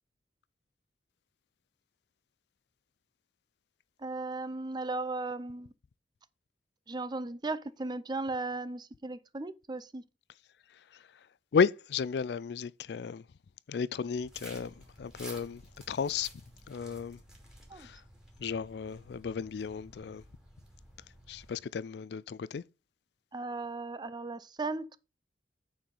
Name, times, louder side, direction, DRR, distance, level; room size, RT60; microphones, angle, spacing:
voice 1, 4.0-5.7 6.9-10.0 17.7-17.9 23.3-25.0, right 3 dB, 25° right, 0.5 m, -36 dB
voice 2, 11.5-13.2 13.7-15.6 15.9-16.3 16.7-17.2 17.8-18.0 18.4-20.2 21.3-22.6, left 6 dB, 65° left, 0.4 m, -33 dB
sound 1, 14.2-21.6, equal, 5° right, 2.6 m, -53 dB
8.9 x 4.8 x 5.3 m
head